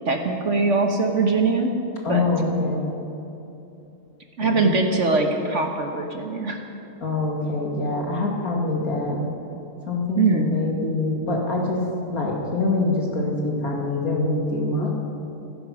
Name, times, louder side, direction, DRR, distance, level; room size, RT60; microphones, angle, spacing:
voice 1, 0.0-1.7 2.1-2.2 4.4-6.6 10.2-10.5, right 3 dB, 50° right, 3 dB, 1.4 m, -22 dB
voice 2, 2.0-2.8 4.4-4.7 7.0-9.2 9.9-11.8 12.1-14.9, left 2 dB, 60° left, -1 dB, 2.8 m, -24 dB
15.5 x 15.0 x 6.1 m, 2.9 s
omnidirectional pair, 1.8 m